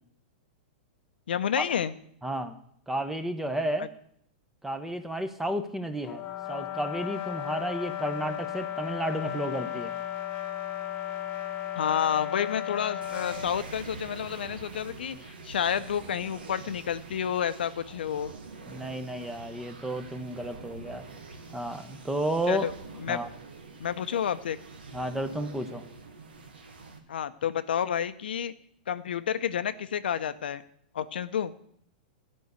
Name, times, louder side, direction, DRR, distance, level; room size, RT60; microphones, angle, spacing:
voice 1, 1.3-1.9 11.7-18.3 22.5-22.7 23.0-23.2 23.8-24.6 27.1-28.5 28.9-30.6 30.9-31.5, left 9 dB, 85° left, 12 dB, 0.7 m, -30 dB
voice 2, 2.2-2.6 2.9-3.9 4.6-6.2 6.5-9.9 18.7-21.0 21.5-22.7 23.1-23.3 24.9-25.8, right 1 dB, 5° right, 9 dB, 0.9 m, -32 dB
sound 1, 6.0-13.5, left 11 dB, 30° left, 1.2 m, -35 dB
sound 2, 13.0-27.0, right 4 dB, 90° right, 1.7 m, -45 dB
12.5 x 5.4 x 8.0 m, 0.67 s
hypercardioid pair, 135°, 5 cm